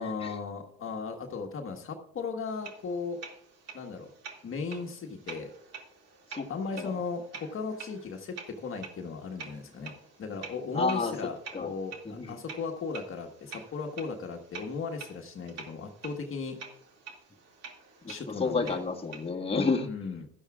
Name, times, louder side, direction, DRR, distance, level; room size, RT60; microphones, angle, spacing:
voice 1, 0.0-3.2 3.7-4.1 4.4-5.5 6.5-9.9 10.2-16.6 18.1-18.8 19.9-20.3, left 4 dB, 40° left, 2 dB, 1.5 m, -36 dB
sound 1, 2.5-19.3, right 6 dB, 50° right, 2.4 m, -48 dB
voice 2, 10.7-11.1 11.5-11.7 12.0-12.3 18.0-19.9, left 4 dB, 15° left, 0 dB, 1.7 m, -30 dB
16.0 x 12.0 x 2.4 m, 0.75 s
supercardioid pair, 80°, 33 cm